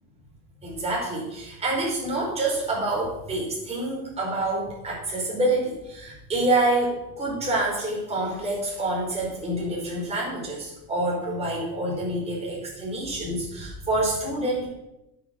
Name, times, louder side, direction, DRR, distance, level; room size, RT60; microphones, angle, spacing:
voice 1, 0.6-14.7, right 2 dB, 20° right, -4 dB, 5.1 m, -27 dB
9.9 x 7.3 x 7.3 m, 0.91 s
cardioid pair, 160°, 34 cm